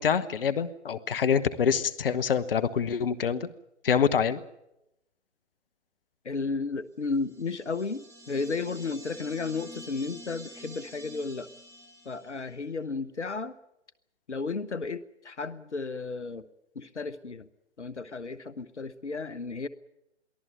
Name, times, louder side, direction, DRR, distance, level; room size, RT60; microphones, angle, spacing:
voice 1, 0.0-3.5 3.8-4.4, left 7 dB, 50° left, 14 dB, 1.1 m, -26 dB
voice 2, 6.2-11.5 12.0-13.6 14.3-16.5 16.7-17.5 17.8-19.7, left 4 dB, 75° left, 16 dB, 1.1 m, -33 dB
sound 1, 7.2-12.6, equal, 10° right, 3.4 m, -48 dB
23.0 x 15.0 x 9.1 m, 0.86 s
figure-of-eight pair, 135°, 35 cm